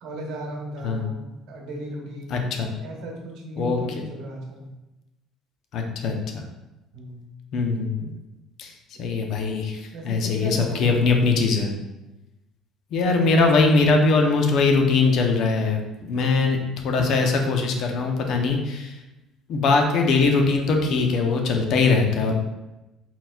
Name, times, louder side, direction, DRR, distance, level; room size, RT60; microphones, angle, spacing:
voice 1, 0.0-2.4 2.8-4.7 6.9-7.2 9.9-10.9, right 1 dB, 75° right, 0 dB, 0.9 m, -36 dB
voice 2, 2.3-2.7 3.6-3.8 5.7-6.4 7.5-8.1 8.6-8.7 9.0-11.7 12.9-16.6 16.8-18.9 19.5-22.3, left 4 dB, 65° left, 3 dB, 0.6 m, -21 dB
4.2 x 4.0 x 2.3 m, 1.0 s
supercardioid pair, 95°, 0 cm